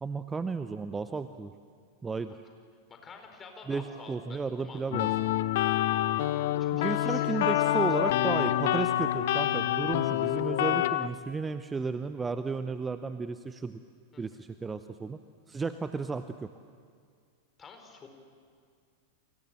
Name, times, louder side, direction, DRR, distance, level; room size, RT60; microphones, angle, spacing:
voice 1, 0.0-1.5 2.0-2.4 3.7-5.1 6.7-13.8 14.2-15.2 15.5-16.5, right 4 dB, 15° right, 11 dB, 0.8 m, -33 dB
voice 2, 2.9-5.1 6.6-8.8 14.1-14.4 17.6-18.1, left 4 dB, 20° left, 4 dB, 4.4 m, -48 dB
sound 1, 4.9-11.1, left 13 dB, 55° left, 0.8 m, -27 dB
29.5 x 24.5 x 7.5 m, 2.1 s
figure-of-eight pair, 90°, 0 cm